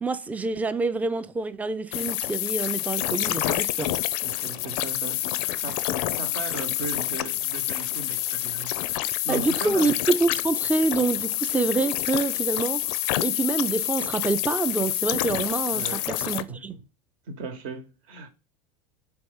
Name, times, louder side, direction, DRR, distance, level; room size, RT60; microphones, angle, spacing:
voice 1, 0.0-3.9 9.3-12.8 13.2-16.8, right 3 dB, 10° right, 0.3 m, -26 dB
sound 1, 1.9-16.4, left 15 dB, 60° left, 0.4 m, -28 dB
voice 2, 4.2-5.9 6.1-10.0 15.7-16.8 17.3-18.3, right 4 dB, 65° right, 1.1 m, -38 dB
4.5 x 3.0 x 3.6 m
hypercardioid pair, 95°, 19 cm